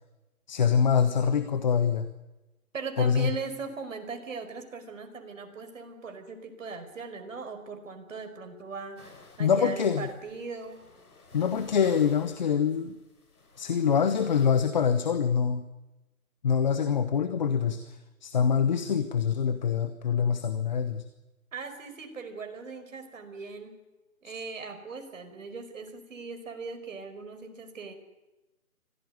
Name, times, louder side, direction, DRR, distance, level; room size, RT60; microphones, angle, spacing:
voice 1, 0.5-2.1 3.0-3.3 9.4-10.1 11.3-12.9 13.6-15.6 16.4-21.0 24.2-24.4, left 7 dB, 30° left, 11 dB, 1.1 m, -25 dB
voice 2, 2.7-10.9 21.5-23.8 24.2-27.9, right 4 dB, 60° right, 7 dB, 5.2 m, -39 dB
sound 1, 9.0-14.5, left 3 dB, 90° left, 6.0 m, -54 dB
25.0 x 17.0 x 9.5 m, 1.0 s
hypercardioid pair, 165°, 43 cm